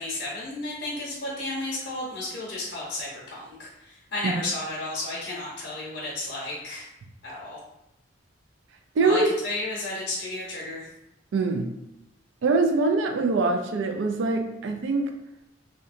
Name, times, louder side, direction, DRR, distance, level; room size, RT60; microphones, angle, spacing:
voice 1, 0.0-6.8 7.2-7.6 9.0-10.9, left 2 dB, 65° left, -5 dB, 0.7 m, -33 dB
voice 2, 9.0-9.3 11.3-11.7 12.4-15.1, right 3 dB, 75° right, 5 dB, 0.4 m, -23 dB
2.7 x 2.1 x 2.5 m, 0.87 s
head